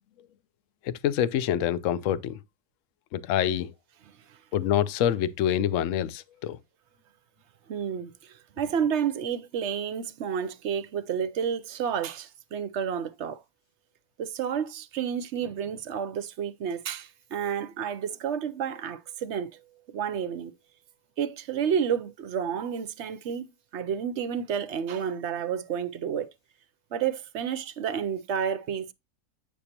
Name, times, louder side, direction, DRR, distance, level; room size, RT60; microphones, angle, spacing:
voice 1, 0.8-2.4 3.1-3.7 4.5-6.6, left 10 dB, 70° left, 0.9 m, -26 dB
voice 2, 7.7-13.4 14.2-19.6 19.9-20.5 21.2-23.5 23.7-26.3 26.9-28.9, right 8 dB, 60° right, 0.8 m, -30 dB
8.7 x 6.6 x 2.8 m
omnidirectional pair, 1.6 m